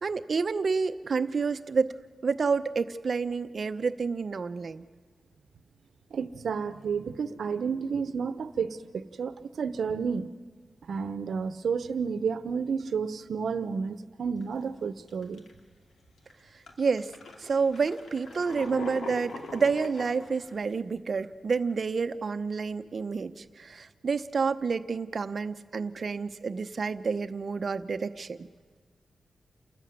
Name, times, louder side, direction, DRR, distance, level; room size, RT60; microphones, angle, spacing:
voice 1, 0.0-1.9 2.2-4.8 16.8-17.1 17.4-28.5, right 5 dB, 50° right, 10 dB, 0.8 m, -29 dB
voice 2, 6.1-10.3 10.9-15.4, right 6 dB, 80° right, 13 dB, 0.9 m, -31 dB
sound 1, 14.4-14.6 15.1-15.6 16.2-16.3 16.7-20.7, left 3 dB, 85° left, 2.6 m, -41 dB
28.5 x 13.5 x 9.6 m, 1.5 s
wide cardioid pair, 130°, 0 cm